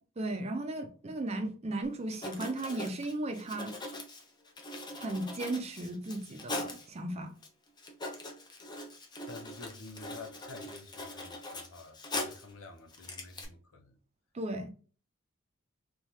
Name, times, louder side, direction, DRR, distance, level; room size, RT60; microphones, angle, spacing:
voice 1, 0.2-3.7 4.9-7.3 14.3-14.7, right 2 dB, 30° right, 0.5 m, -36 dB
Writing, 2.1-6.9 7.4-7.5 7.8-12.5 12.9-13.4, left 2 dB, 20° left, 0.5 m, -41 dB
voice 2, 9.3-14.0, left 3 dB, 90° left, 0.7 m, -49 dB
3.2 x 2.3 x 2.6 m
head